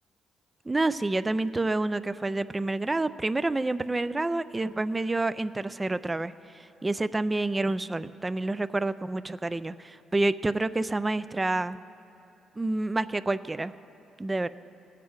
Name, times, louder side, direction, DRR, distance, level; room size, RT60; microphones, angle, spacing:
voice 1, 0.7-11.8 12.6-13.7 14.2-14.5, right 2 dB, 20° right, 14 dB, 0.3 m, -28 dB
18.5 x 7.5 x 4.6 m, 2.9 s
cardioid pair, 90°, 0 cm